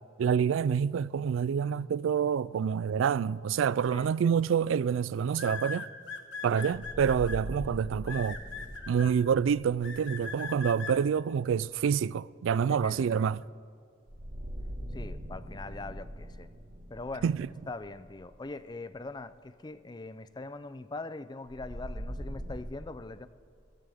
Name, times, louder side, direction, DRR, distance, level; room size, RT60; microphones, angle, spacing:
voice 1, 0.2-5.9 6.4-8.4 8.9-13.4 17.2-17.4, right 7 dB, 80° right, 0.3 m, -27 dB
sound 1, 3.9-4.1 5.3-7.4 8.1-9.1 9.8-10.9, left 5 dB, 70° left, 1.5 m, -39 dB
sound 2, 6.7-11.4 14.1-19.2 21.5-22.6, equal, 50° right, 1.6 m, -42 dB
voice 2, 12.7-13.2 14.9-16.5 16.9-17.3 17.7-23.3, left 3 dB, 20° left, 0.4 m, -42 dB
24.5 x 16.5 x 3.5 m
head